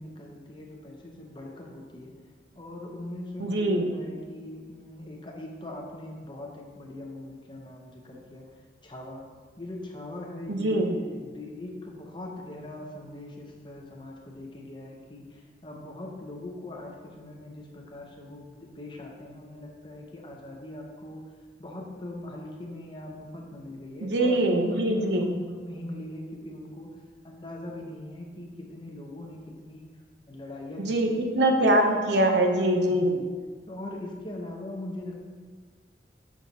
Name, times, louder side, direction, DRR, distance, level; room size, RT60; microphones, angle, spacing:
voice 1, 0.0-2.1 2.6-8.5 8.8-9.2 9.6-21.2 21.6-26.9 27.2-29.9 30.3-31.2 31.8-31.9 32.9-33.3 33.7-35.3, left 1 dB, 25° left, 0 dB, 0.7 m, -40 dB
voice 2, 3.4-3.9 10.5-11.0 24.0-25.3 30.8-33.1, right 1 dB, 85° right, 3 dB, 0.7 m, -23 dB
6.3 x 6.0 x 2.8 m, 1.5 s
head